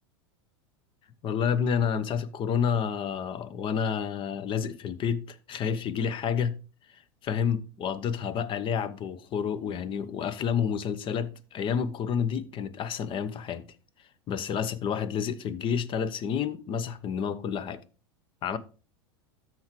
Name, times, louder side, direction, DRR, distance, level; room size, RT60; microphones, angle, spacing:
voice 1, 1.2-6.6 6.9-13.7 14.3-17.8 18.4-18.6, left 7 dB, 35° left, 0.9 m, -29 dB
13.0 x 4.5 x 3.1 m
hypercardioid pair, 95°, 14 cm